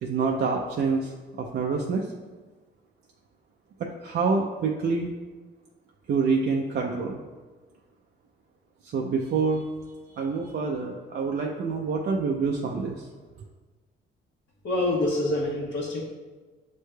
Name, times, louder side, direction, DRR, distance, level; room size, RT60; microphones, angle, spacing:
voice 1, 0.0-1.1 1.4-2.1 3.8-5.1 6.1-7.2 8.9-9.6 10.1-13.1, right 4 dB, 55° right, 0 dB, 0.5 m, -26 dB
voice 2, 14.6-16.0, left 2 dB, 70° left, -5 dB, 1.0 m, -26 dB
7.3 x 3.2 x 2.2 m, 1.3 s
cardioid pair, 90°, 20 cm